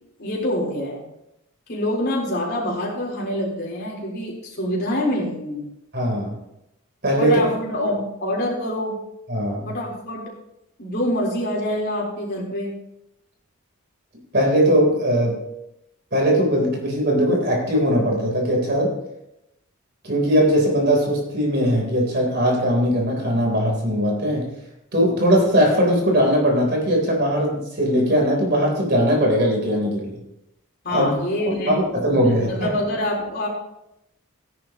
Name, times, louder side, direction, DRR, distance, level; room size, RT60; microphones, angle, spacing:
voice 1, 0.2-1.1 1.7-5.6 7.2-9.0 9.7-10.3 10.8-12.8 30.8-33.5, left 1 dB, 50° left, -3 dB, 3.8 m, -26 dB
voice 2, 5.9-6.4 7.0-7.4 9.3-9.7 14.3-15.4 16.1-19.0 20.0-24.5 24.9-30.2 30.9-31.1 31.5-32.7, equal, 50° right, 0 dB, 3.6 m, -20 dB
16.5 x 10.5 x 3.0 m, 0.85 s
head